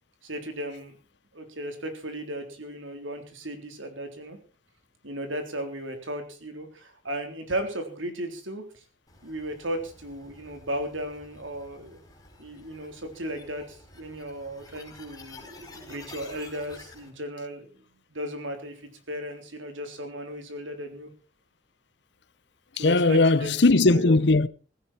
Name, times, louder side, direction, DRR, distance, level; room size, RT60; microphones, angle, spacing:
voice 1, 0.2-0.9 1.3-4.4 5.0-8.6 9.2-12.0 12.4-15.5 15.8-17.7 18.1-18.8 19.1-21.1 22.8-23.5 23.9-24.1, right 1 dB, 80° right, 3.8 m, -35 dB
sound 1, 9.1-17.1, left 2 dB, 20° left, 4.9 m, -50 dB
voice 2, 22.8-24.5, left 2 dB, 60° left, 0.8 m, -19 dB
16.5 x 16.0 x 4.4 m
head